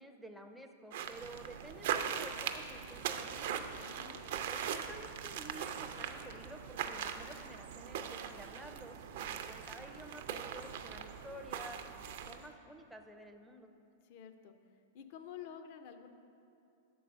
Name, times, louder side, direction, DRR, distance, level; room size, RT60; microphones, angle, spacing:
voice 1, 0.0-3.7 4.4-13.7, right 1 dB, ahead, 3 dB, 0.4 m, -51 dB
sound 1, 0.9-12.5, right 8 dB, 65° right, 0.4 m, -41 dB
voice 2, 3.8-4.2 14.1-14.5 14.9-16.1, left 8 dB, 55° left, 8 dB, 0.5 m, -49 dB
6.5 x 4.7 x 6.1 m, 2.7 s
hypercardioid pair, 110°, 0 cm